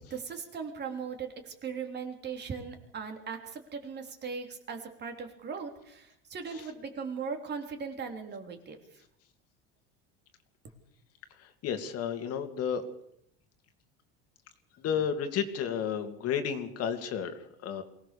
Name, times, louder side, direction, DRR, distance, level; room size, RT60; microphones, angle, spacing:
voice 1, 0.0-8.8, right 5 dB, 30° right, 4 dB, 3.5 m, -39 dB
voice 2, 11.4-12.8 14.8-17.8, left 7 dB, 50° left, 7 dB, 2.6 m, -32 dB
23.5 x 18.0 x 6.9 m, 0.75 s
supercardioid pair, 130°, 32 cm